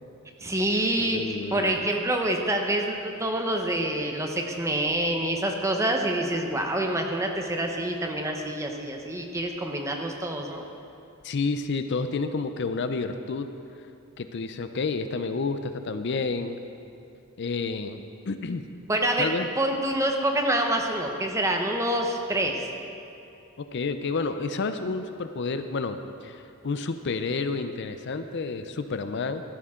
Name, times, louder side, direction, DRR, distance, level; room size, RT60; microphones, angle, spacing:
voice 1, 0.4-10.7 18.9-19.3 19.6-22.7, right 1 dB, 15° right, 2 dB, 0.9 m, -27 dB
voice 2, 1.0-1.8 11.2-13.5 14.2-16.6 17.4-18.6 19.2-19.5 23.6-29.4, left 4 dB, 55° left, 9 dB, 0.5 m, -30 dB
14.0 x 12.5 x 3.7 m, 2.8 s
head